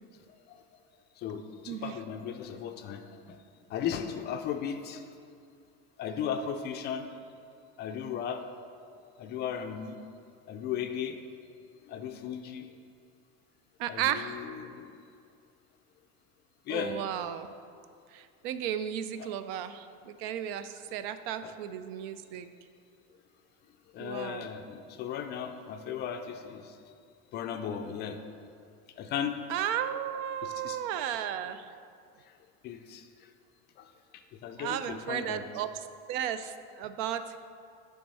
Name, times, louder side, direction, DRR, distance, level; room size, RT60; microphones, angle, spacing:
voice 1, 1.2-3.0 3.3-3.4 3.7-5.0 6.0-7.1 7.8-8.4 9.2-10.0 10.5-11.2 11.9-12.7 13.9-14.9 16.7-17.0 19.2-19.3 21.4-21.5 23.9-26.8 27.3-28.2 29.0-29.4 30.4-30.8 32.6-33.1 33.8-33.9 34.4-35.5, left 8 dB, 35° left, 6 dB, 0.4 m, -36 dB
voice 2, 13.8-14.4 16.7-17.5 18.1-22.5 24.0-24.5 29.5-31.7 34.6-35.7 36.1-37.4, right 10 dB, 70° right, 11 dB, 0.5 m, -34 dB
9.1 x 3.5 x 5.4 m, 2.4 s
cardioid pair, 150°, 31 cm